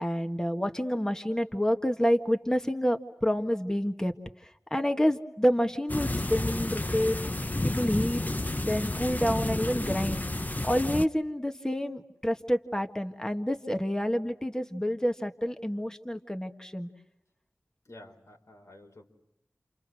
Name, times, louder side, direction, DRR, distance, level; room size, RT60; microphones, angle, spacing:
voice 1, 0.0-7.2 7.6-8.2 8.6-10.2 10.6-16.9, equal, 10° left, 5 dB, 1.7 m, -28 dB
sound 1, 5.9-11.1, left 2 dB, 30° left, 0.9 m, -31 dB
voice 2, 17.8-19.1, left 1 dB, 75° left, 2 dB, 5.0 m, -51 dB
30.0 x 28.0 x 6.3 m, 0.85 s
wide cardioid pair, 40°, 5 cm